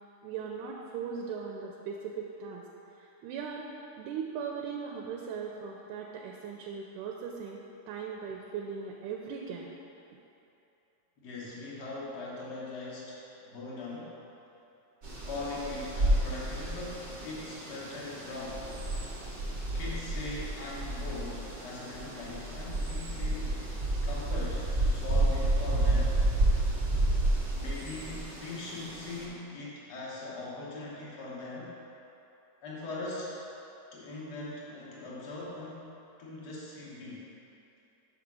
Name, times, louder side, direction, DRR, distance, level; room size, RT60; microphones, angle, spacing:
voice 1, 0.2-2.6 3.0-3.7 4.0-9.7, right 6 dB, 85° right, 0 dB, 2.0 m, -39 dB
voice 2, 11.2-14.1 15.2-18.7 19.7-23.6 24.0-26.2 27.5-31.8 32.6-33.4 33.9-35.9 36.2-37.3, left 2 dB, 75° left, -6 dB, 0.9 m, -40 dB
sound 1, 15.0-29.3, right 1 dB, 65° right, 0.8 m, -31 dB
5.7 x 5.0 x 6.0 m, 2.9 s
omnidirectional pair, 3.5 m